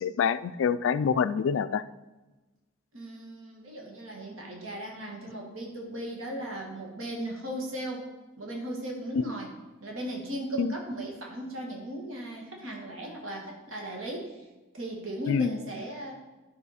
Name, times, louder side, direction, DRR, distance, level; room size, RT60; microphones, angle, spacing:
voice 1, 0.0-1.8 10.6-10.7 15.3-15.6, left 6 dB, 60° left, 12 dB, 0.3 m, -26 dB
voice 2, 2.9-8.0 8.4-9.5 9.8-14.3 14.7-16.1, right 1 dB, 65° right, 0 dB, 1.6 m, -37 dB
10.5 x 5.6 x 4.1 m, 1.1 s
head